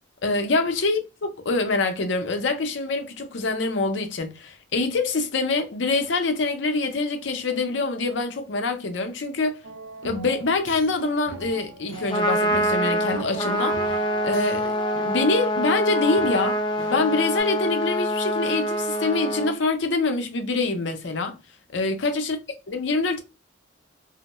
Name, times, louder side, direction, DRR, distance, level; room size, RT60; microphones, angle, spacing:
voice 1, 0.2-9.6 10.0-13.9 14.2-14.7 15.0-16.6 16.9-21.4 21.7-22.4 22.7-23.2, left 3 dB, 70° left, 0.6 m, -25 dB
sound 1, 9.6-17.4, right 4 dB, 90° right, 0.5 m, -38 dB
Trumpet, 11.9-19.5, equal, 25° left, 0.4 m, -25 dB
2.2 x 2.0 x 2.9 m
head